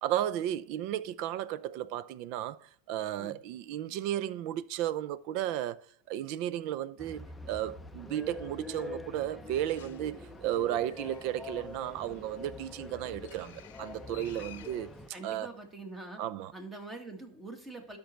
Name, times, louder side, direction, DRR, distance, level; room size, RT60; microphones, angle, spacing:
voice 1, 0.0-14.9 15.2-15.5 16.2-16.5, right 12 dB, 55° right, 0.5 m, -34 dB
sound 1, 7.0-15.1, left 2 dB, 5° left, 0.6 m, -45 dB
Bird, 9.4-15.9, left 13 dB, 80° left, 0.7 m, -57 dB
voice 2, 15.1-16.2 16.5-18.0, right 2 dB, 15° right, 1.9 m, -44 dB
12.0 x 5.2 x 4.4 m
supercardioid pair, 130°, 0 cm